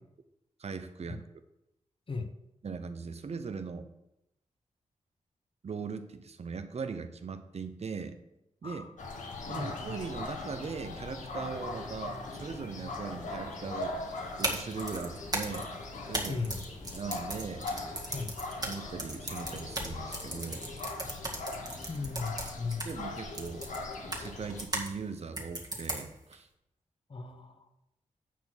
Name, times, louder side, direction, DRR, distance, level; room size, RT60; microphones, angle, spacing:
voice 1, 0.6-1.2 2.6-3.9 5.6-8.2 8.6-8.9 9.5-14.0 14.4-15.7 16.1-16.4 16.9-17.7 18.6-20.6 22.8-23.7 24.2-26.5, right 5 dB, 55° right, 9 dB, 0.8 m, -39 dB
voice 2, 8.6-8.9 9.6-10.0 16.3-16.6 18.1-18.3 21.9-22.9 27.1-27.7, left 4 dB, 45° left, 7 dB, 1.0 m, -37 dB
sound 1, 9.0-24.6, left 2 dB, 85° left, 1.5 m, -40 dB
sound 2, 14.2-24.9 25.4-26.3, right 1 dB, 30° right, 1.8 m, -38 dB
10.0 x 4.2 x 6.3 m, 0.85 s
cardioid pair, 70°, 13 cm